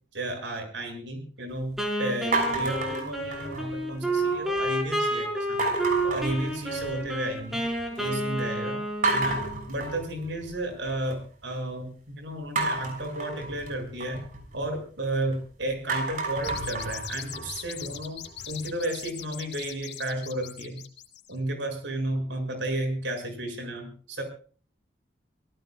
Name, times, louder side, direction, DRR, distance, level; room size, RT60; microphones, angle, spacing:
voice 1, 0.1-5.6 6.0-7.6 8.0-8.8 9.1-14.2 14.5-18.2 18.5-20.8 21.3-24.2, right 1 dB, 85° right, 4 dB, 7.2 m, -33 dB
Wind instrument woodwind instrument, 1.8-9.7, right 1 dB, ahead, 5.1 m, -30 dB
sound 1, 2.3-3.8 4.2-4.7 5.6-7.1 7.4-8.0 8.4-8.5 9.0-11.2 12.6-15.4 15.7-18.7, right 2 dB, 45° right, 6.3 m, -31 dB
sound 2, 16.4-21.4, left 11 dB, 75° left, 3.2 m, -40 dB
27.5 x 18.5 x 2.4 m, 0.41 s
head